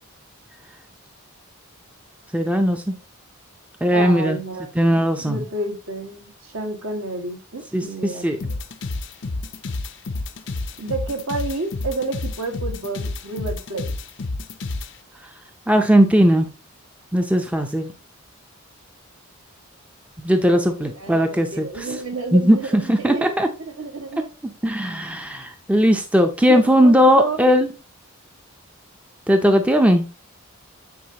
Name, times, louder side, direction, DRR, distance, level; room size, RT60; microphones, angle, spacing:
voice 1, 2.3-2.9 3.8-4.4 4.8-5.4 7.7-8.4 15.7-16.5 17.1-17.9 20.2-21.9 22.3-23.5 24.6-27.7 29.3-30.0, equal, 5° right, 6 dB, 0.5 m, -18 dB
voice 2, 3.9-8.6 10.8-13.9 20.5-23.3 23.6-24.3 26.5-27.5, right 3 dB, 70° right, 3 dB, 1.7 m, -30 dB
sound 1, 8.4-14.9, left 3 dB, 55° left, 0.6 m, -29 dB
9.4 x 4.4 x 2.9 m, 0.30 s
head